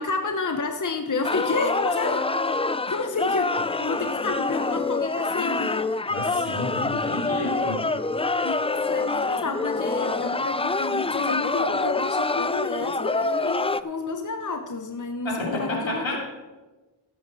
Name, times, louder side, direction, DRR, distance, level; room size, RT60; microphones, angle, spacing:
voice 1, 0.0-2.3 2.9-5.9 6.2-6.3 6.9-7.0 8.4-16.2, left 3 dB, 40° left, 5 dB, 0.9 m, -30 dB
sound 1, 1.2-13.8, left 3 dB, 15° left, 0.3 m, -26 dB
voice 2, 6.1-7.8 15.2-16.2, left 2 dB, 80° left, -2 dB, 3.2 m, -30 dB
16.0 x 8.7 x 4.1 m, 1.2 s
wide cardioid pair, 55°, 46 cm